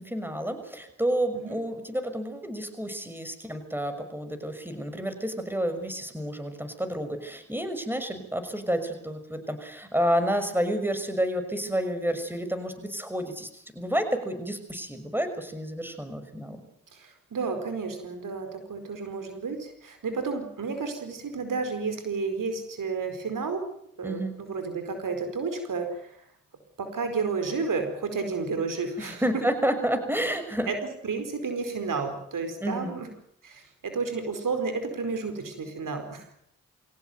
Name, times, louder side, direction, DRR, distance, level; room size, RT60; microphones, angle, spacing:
voice 1, 0.0-16.6 24.0-24.3 29.0-30.7 32.6-32.9, equal, 5° right, 8 dB, 6.1 m, -30 dB
voice 2, 16.9-23.6 24.0-26.1 26.8-29.4 30.7-33.1 33.4-36.4, right 4 dB, 75° right, 7 dB, 4.8 m, -31 dB
23.0 x 17.5 x 9.3 m, 0.73 s
supercardioid pair, 40°, 32 cm